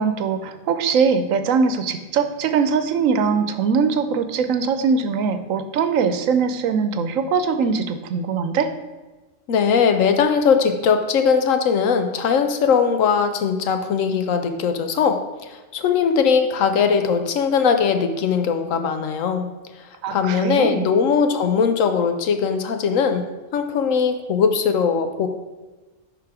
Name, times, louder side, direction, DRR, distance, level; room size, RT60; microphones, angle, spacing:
voice 1, 0.0-8.7 20.0-20.9, right 5 dB, 85° right, 10 dB, 1.1 m, -21 dB
voice 2, 9.5-19.5 20.1-25.3, left 6 dB, 80° left, 7 dB, 1.1 m, -20 dB
10.5 x 3.8 x 4.8 m, 1.2 s
omnidirectional pair, 1.3 m